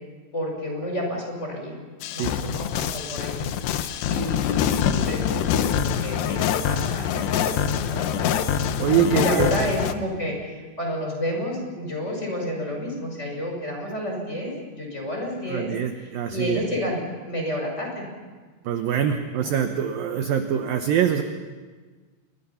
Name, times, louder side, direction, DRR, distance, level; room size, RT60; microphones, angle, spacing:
voice 1, 0.3-1.8 2.1-18.0 19.4-19.5, left 1 dB, 15° left, 0 dB, 5.8 m, -30 dB
sound 1, 2.0-9.9, left 9 dB, 75° left, 3.1 m, -25 dB
voice 2, 8.8-9.5 15.5-16.6 18.7-21.2, right 9 dB, 70° right, 6 dB, 2.4 m, -24 dB
28.5 x 23.0 x 5.8 m, 1.4 s
omnidirectional pair, 5.1 m